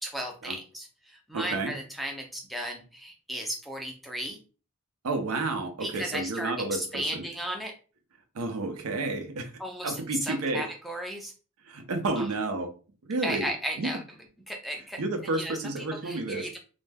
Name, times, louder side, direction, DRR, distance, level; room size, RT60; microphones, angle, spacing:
voice 1, 0.0-4.4 5.8-7.7 9.6-11.3 12.2-12.3 13.2-14.0 14.5-15.0 15.3-16.6, equal, ahead, 1 dB, 0.3 m, -35 dB
voice 2, 1.3-1.7 5.0-7.2 8.3-9.5 9.8-10.6 11.6-12.7 13.0-13.5 13.8-13.9 15.0-16.5, right 2 dB, 90° right, 6 dB, 0.6 m, -31 dB
2.2 x 2.0 x 3.3 m, 0.37 s
head